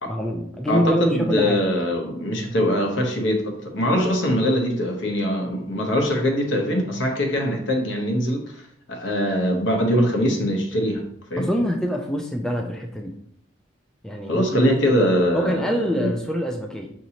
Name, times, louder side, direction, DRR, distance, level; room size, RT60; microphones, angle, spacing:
voice 1, 0.1-1.6 11.4-13.1 14.0-15.1 15.3-16.9, equal, 5° left, 1 dB, 0.3 m, -25 dB
voice 2, 0.7-8.4 8.9-11.0 11.3-11.5 14.3-15.7 15.9-16.1, equal, 75° left, 2 dB, 0.9 m, -22 dB
5.9 x 2.7 x 2.9 m, 0.69 s
head